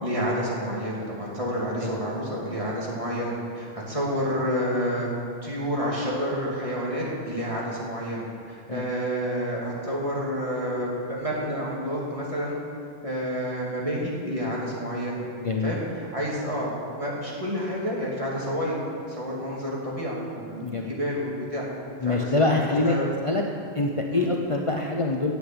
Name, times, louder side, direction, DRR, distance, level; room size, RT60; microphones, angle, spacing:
voice 1, 0.0-5.1 5.4-12.6 13.0-15.2 15.6-18.7 19.1-21.6 22.0-23.1 24.1-24.3, equal, 30° right, -5 dB, 2.8 m, -29 dB
voice 2, 15.4-15.7 20.6-20.9 22.0-23.0 23.2-23.4 23.7-25.3, left 3 dB, 35° left, 1 dB, 0.8 m, -25 dB
10.5 x 7.9 x 8.8 m, 2.4 s
omnidirectional pair, 1.1 m